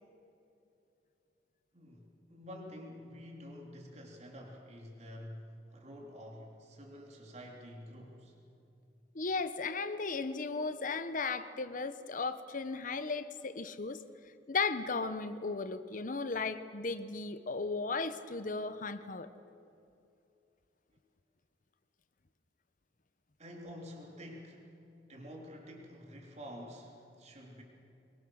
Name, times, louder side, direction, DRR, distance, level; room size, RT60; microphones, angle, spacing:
voice 1, 1.7-8.4 23.4-27.6, equal, 40° right, 0 dB, 3.4 m, -49 dB
voice 2, 9.1-14.0 14.5-19.3, left 4 dB, 45° left, 11 dB, 1.0 m, -36 dB
24.0 x 22.5 x 6.5 m, 2.7 s
head